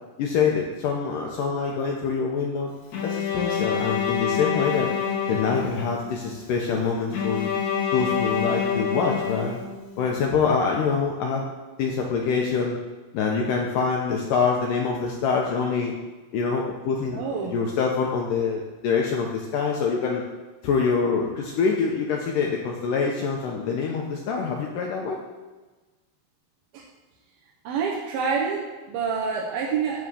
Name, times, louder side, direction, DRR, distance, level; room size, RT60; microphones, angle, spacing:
voice 1, 0.2-2.7 3.0-4.9 5.3-7.5 7.9-9.6 10.0-11.4 11.8-12.8 13.1-15.9 16.3-17.2 17.5-20.2 20.6-25.2, left 5 dB, 80° left, 0 dB, 2.0 m, -25 dB
Bowed string instrument, 2.9-6.1 7.1-10.1, left 7 dB, 55° left, 2.4 m, -27 dB
voice 2, 17.1-17.5 26.7-26.8 27.6-30.1, right 6 dB, 75° right, -3 dB, 2.7 m, -27 dB
10.5 x 3.7 x 6.8 m, 1.3 s
omnidirectional pair, 4.6 m